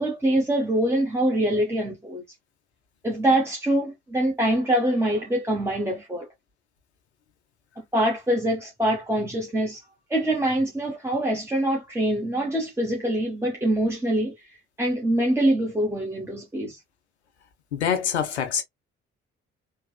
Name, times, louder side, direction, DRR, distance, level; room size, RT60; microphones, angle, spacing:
voice 1, 0.0-2.2 3.0-6.3 7.9-9.8 10.1-14.3 14.8-16.8, right 1 dB, 10° right, 1.0 m, -24 dB
voice 2, 17.7-18.6, left 8 dB, 85° left, 0.6 m, -25 dB
3.2 x 2.5 x 2.2 m
figure-of-eight pair, 40°, 33 cm